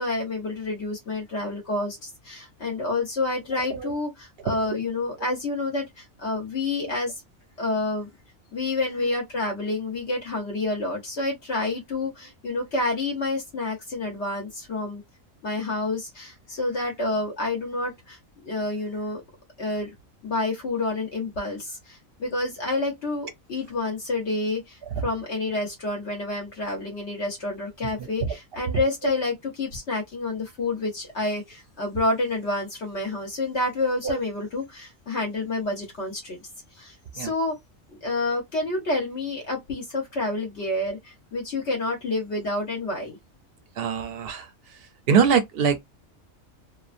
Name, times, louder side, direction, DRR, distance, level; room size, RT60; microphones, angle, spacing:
voice 1, 0.0-7.2 7.6-8.1 8.5-15.0 15.4-18.2 18.4-19.2 19.6-19.9 20.2-37.5 37.9-43.2, left 2 dB, 60° left, 1.1 m, -29 dB
voice 2, 43.8-44.5 45.1-45.8, right 6 dB, 55° right, 0.7 m, -23 dB
2.8 x 2.2 x 2.4 m
omnidirectional pair, 1.4 m